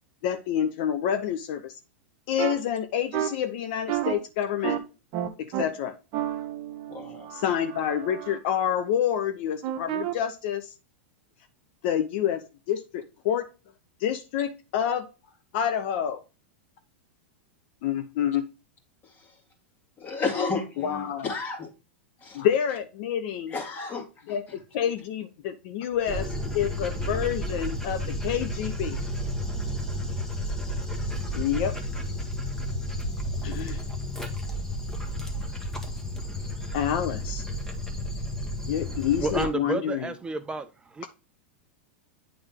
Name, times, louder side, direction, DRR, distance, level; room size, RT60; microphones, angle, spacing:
voice 1, 0.2-1.7 2.3-4.8 5.4-5.9 7.3-10.7 11.8-12.4 12.7-13.5 14.0-15.1 15.5-16.2 17.8-18.5 20.8-21.3 22.3-23.6 24.3-29.0 31.3-31.7 33.4-33.8 36.7-37.4 38.7-40.1, left 9 dB, 60° left, 0.7 m, -28 dB
sound 1, 2.4-2.5 3.1-3.3 3.9-4.1 4.6-4.8 5.1-5.6 6.1-8.4 9.6-10.1, right 12 dB, 50° right, 0.9 m, -31 dB
voice 2, 6.9-7.3 19.0-19.4 20.0-21.7 22.2-22.5 23.5-24.6, left 4 dB, 30° left, 2.0 m, -33 dB
sound 2, 25.9-33.4, right 2 dB, 90° right, 0.8 m, -37 dB
Dog, 26.1-39.4, left 1 dB, 5° left, 1.3 m, -33 dB
voice 3, 38.8-41.1, right 3 dB, 15° right, 0.4 m, -31 dB
8.8 x 3.4 x 3.6 m
hypercardioid pair, 115°, 7 cm